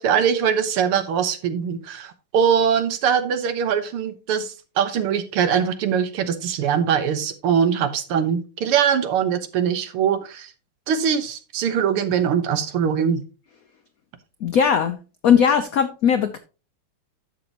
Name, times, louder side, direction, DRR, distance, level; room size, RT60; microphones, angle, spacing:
voice 1, 0.0-10.5 10.9-13.2, right 7 dB, 80° right, 10 dB, 1.9 m, -22 dB
voice 2, 14.4-15.0 15.2-16.4, left 7 dB, 80° left, 9 dB, 0.7 m, -18 dB
11.5 x 7.1 x 2.9 m, 0.32 s
omnidirectional pair, 2.4 m